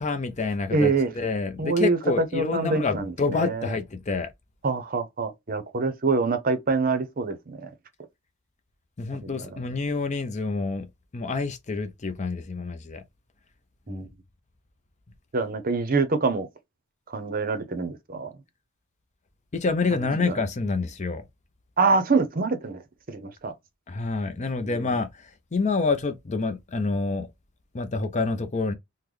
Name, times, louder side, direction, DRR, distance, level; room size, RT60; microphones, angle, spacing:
voice 1, 0.0-4.3 9.0-10.9 11.1-13.0 13.9-14.1 19.5-21.3 23.9-25.1 25.5-27.3 27.7-28.7, left 3 dB, 30° left, 0.5 m, -27 dB
voice 2, 0.7-1.1 1.6-2.0 2.3-3.7 4.6-7.7 9.4-9.5 13.9-14.1 15.3-16.5 17.1-18.3 19.9-20.4 21.8-22.8 23.1-23.5 24.6-24.8, right 4 dB, 40° right, 0.7 m, -25 dB
3.8 x 2.1 x 3.1 m
head